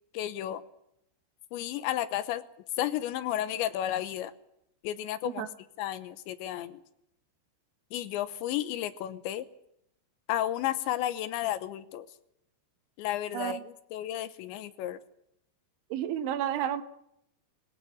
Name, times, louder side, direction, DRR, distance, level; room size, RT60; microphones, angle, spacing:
voice 1, 0.1-0.6 1.5-2.4 2.8-4.3 4.8-5.5 5.8-6.8 7.9-9.5 10.3-12.1 13.0-15.0, left 12 dB, 75° left, 14 dB, 3.0 m, -32 dB
voice 2, 13.3-13.7 15.9-16.8, right 11 dB, 75° right, 12 dB, 3.5 m, -31 dB
20.5 x 18.5 x 8.5 m, 0.77 s
omnidirectional pair, 5.6 m